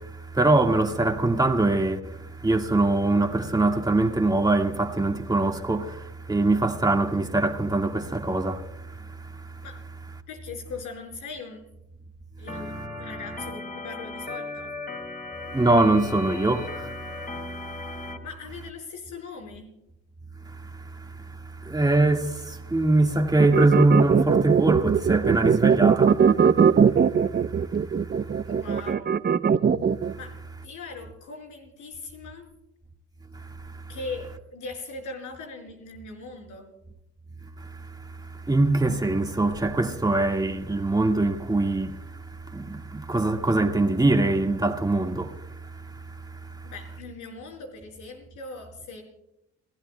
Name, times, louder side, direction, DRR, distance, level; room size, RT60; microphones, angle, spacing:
voice 1, 0.0-9.5 15.5-18.1 20.5-21.3 21.6-26.3 26.7-27.9 30.1-30.2 33.3-33.7 37.6-37.7 38.2-46.7, right 2 dB, 15° right, 1.7 m, -24 dB
voice 2, 10.3-11.6 12.4-14.7 18.2-19.7 28.4-29.2 30.2-30.3 30.6-32.5 33.9-36.7 46.6-49.0, left 4 dB, 85° left, 4.7 m, -40 dB
Organ, 12.5-18.2, left 2 dB, 30° left, 4.9 m, -37 dB
sound 1, 23.4-30.1, right 6 dB, 35° right, 0.6 m, -20 dB
30.0 x 15.5 x 2.2 m
cardioid pair, 90°, 30 cm